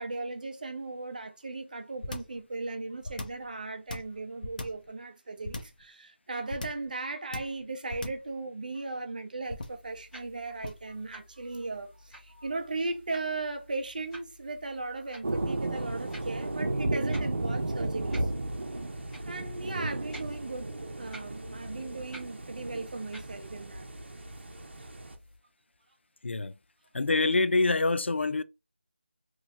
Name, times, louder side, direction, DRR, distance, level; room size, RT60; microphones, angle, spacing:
voice 1, 0.0-18.3 19.2-23.9 24.8-24.9, right 3 dB, 45° right, 0.6 m, -37 dB
sound 1, 2.0-2.4 3.0-3.5 3.9-4.9 5.4-5.8 6.5-6.9 7.3-7.6 7.9-8.3 9.5-9.9 10.6-10.9, left 2 dB, 45° left, 0.6 m, -38 dB
sound 2, 9.4-25.4, right 1 dB, ahead, 0.5 m, -53 dB
sound 3, 15.2-25.2, right 2 dB, 80° right, 0.8 m, -34 dB
voice 2, 26.9-28.4, left 3 dB, 90° left, 0.4 m, -25 dB
3.0 x 2.1 x 3.5 m
figure-of-eight pair, 170°, 6 cm